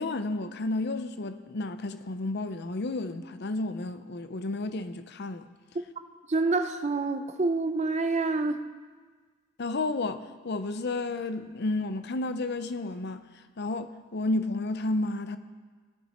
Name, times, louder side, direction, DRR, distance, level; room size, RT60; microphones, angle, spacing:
voice 1, 0.0-5.5 9.6-13.2 13.6-15.4, left 2 dB, 50° left, 0.6 m, -31 dB
voice 2, 6.3-8.6, right 3 dB, 30° right, 0.5 m, -27 dB
20.0 x 6.7 x 4.3 m
head